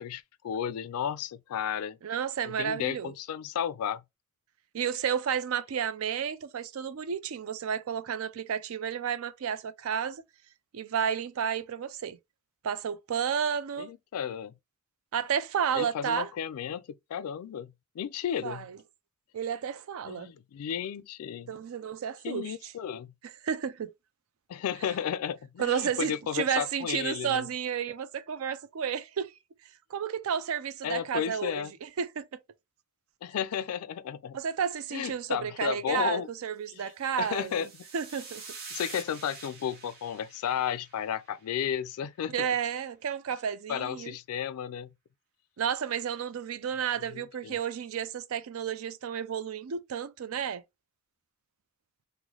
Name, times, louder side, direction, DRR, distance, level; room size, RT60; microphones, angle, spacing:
voice 1, 0.0-2.0 2.4-4.0 13.8-14.5 15.7-18.7 20.1-21.5 22.2-23.1 24.5-27.5 30.8-31.7 33.2-34.4 34.9-36.3 36.7-36.8 37.2-37.7 38.7-42.5 43.7-44.9 47.1-47.5, left 8 dB, 85° left, 0.3 m, -33 dB
voice 2, 2.0-3.1 4.7-10.2 10.7-12.2 12.6-13.9 15.1-16.3 18.4-18.8 19.3-20.3 21.5-22.7 23.2-23.9 25.6-29.3 29.9-32.4 34.3-37.7 37.9-38.4 42.3-44.2 45.6-50.6, right 7 dB, 70° right, 0.4 m, -32 dB
sound 1, 37.0-41.5, right 4 dB, 45° right, 1.0 m, -46 dB
3.1 x 2.1 x 3.7 m
head